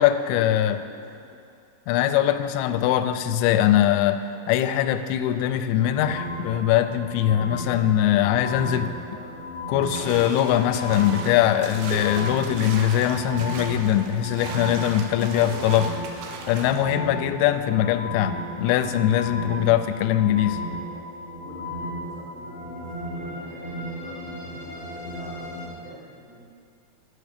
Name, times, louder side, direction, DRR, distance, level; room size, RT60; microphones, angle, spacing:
voice 1, 0.0-0.8 1.9-8.9 9.7-16.0 16.5-20.6, left 11 dB, 85° left, 9 dB, 2.7 m, -22 dB
voice 2, 0.8-1.5 8.3-9.9 15.3-15.6 17.1-17.4 19.5-19.6 21.4-26.4, right 1 dB, 55° right, -5 dB, 1.9 m, -47 dB
sound 1, 5.8-25.7, equal, 25° right, 1.1 m, -35 dB
sound 2, 9.9-16.8, right 5 dB, 80° right, 2.2 m, -37 dB
11.5 x 8.4 x 5.1 m, 2.4 s
omnidirectional pair, 5.5 m